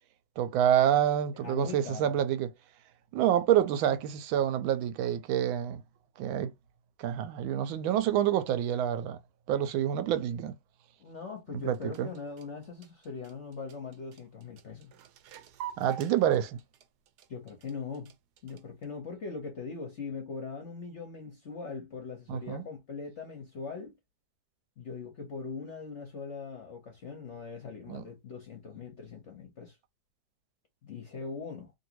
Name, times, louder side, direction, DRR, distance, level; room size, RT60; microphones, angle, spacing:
voice 1, 0.4-2.5 3.1-5.8 6.2-6.5 7.0-9.2 9.5-10.5 11.5-12.1 15.8-16.6 22.3-22.6 27.9-28.0, right 10 dB, 90° right, 1.4 m, -27 dB
voice 2, 1.4-2.2 11.0-14.9 17.3-18.1 18.4-24.0 24.8-29.8 30.8-31.7, left 5 dB, 60° left, 0.7 m, -41 dB
sound 1, 11.6-18.8, right 9 dB, 70° right, 1.0 m, -46 dB
3.1 x 2.7 x 2.8 m
omnidirectional pair, 2.2 m